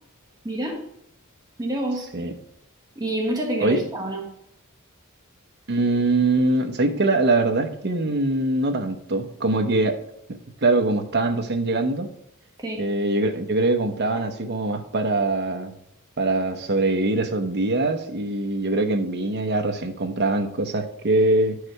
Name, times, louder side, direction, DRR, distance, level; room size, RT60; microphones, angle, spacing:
voice 1, 0.4-0.8 1.6-2.1 2.9-4.2 12.6-12.8 14.1-14.2, right 1 dB, 20° right, 0 dB, 1.2 m, -27 dB
voice 2, 5.7-10.0 10.6-12.1 12.8-15.7 16.2-21.6, right 2 dB, 50° right, 5 dB, 0.9 m, -23 dB
11.0 x 4.8 x 4.7 m, 0.78 s
head